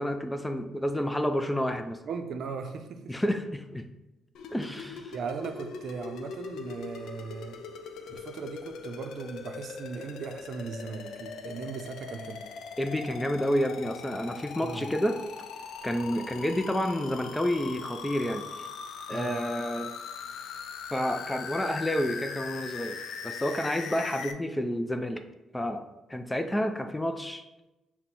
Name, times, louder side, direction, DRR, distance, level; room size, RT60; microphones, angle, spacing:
voice 1, 0.0-2.0 3.1-3.8 4.5-5.1 12.8-15.2 15.8-18.4 19.1-19.9 20.9-23.0 23.2-25.2 25.5-25.8 26.1-27.4, equal, 10° left, 6 dB, 0.4 m, -29 dB
voice 2, 2.1-3.2 4.7-7.6 8.1-12.4 14.6-14.9 19.1-19.4, right 5 dB, 65° right, 6 dB, 0.5 m, -38 dB
sound 1, 4.3-24.3, left 5 dB, 75° left, 0.4 m, -41 dB
5.9 x 2.2 x 4.1 m, 0.99 s
cardioid pair, 90°, 0 cm